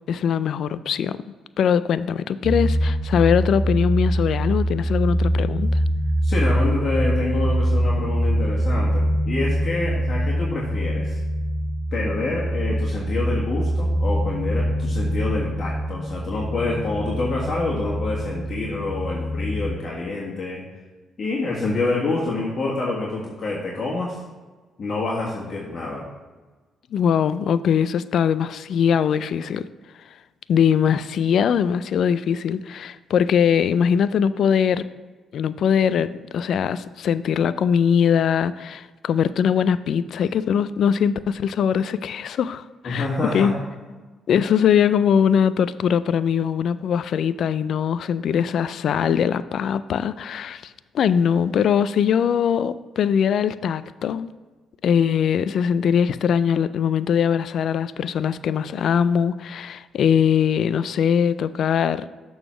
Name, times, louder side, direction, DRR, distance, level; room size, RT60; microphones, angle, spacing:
voice 1, 0.1-1.2 1.6-5.8 26.9-29.7 30.5-34.9 35.3-43.5 44.3-54.3 54.8-62.1, left 8 dB, 65° left, 15 dB, 0.3 m, -21 dB
sound 1, 2.4-19.7, equal, 70° right, 1.4 m, -24 dB
voice 2, 6.2-11.2 11.9-20.6 21.2-24.2 24.8-26.1 42.8-43.5 43.9-44.0, left 3 dB, 50° left, -5 dB, 1.6 m, -27 dB
6.8 x 3.9 x 6.0 m, 1.3 s
supercardioid pair, 65°, 0 cm